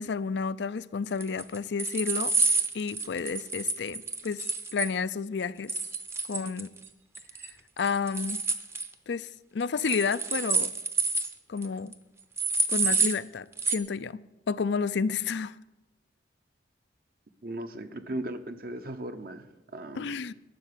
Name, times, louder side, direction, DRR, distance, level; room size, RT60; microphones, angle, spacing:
voice 1, 0.0-2.3 2.7-4.4 4.7-5.7 6.3-6.7 7.8-8.4 9.1-10.7 11.5-11.9 12.7-14.2 14.5-15.6 19.9-20.3, left 5 dB, 75° left, 0.5 m, -31 dB
sound 1, 1.2-4.9 5.7-6.9 7.1-7.5 7.8-8.9 9.8-11.3 11.6-11.7 11.9-12.0 12.4-13.2 13.6-13.8, right 4 dB, 15° right, 0.7 m, -28 dB
voice 2, 17.4-20.1, right 1 dB, 55° right, 1.0 m, -37 dB
12.0 x 6.7 x 9.7 m
head